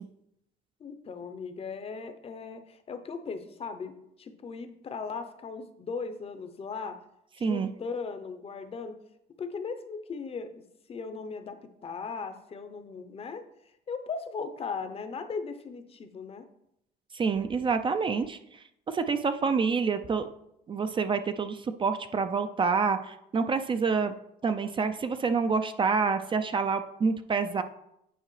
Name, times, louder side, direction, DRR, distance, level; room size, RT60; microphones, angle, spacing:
voice 1, 0.8-7.0 7.4-9.0 9.4-16.4, left 5 dB, 35° left, 9 dB, 0.7 m, -38 dB
voice 2, 17.1-18.4 18.9-20.3 20.7-24.1 24.4-27.6, right 5 dB, 30° right, 9 dB, 0.4 m, -27 dB
9.0 x 4.8 x 3.2 m, 0.79 s
cardioid pair, 110°, 17 cm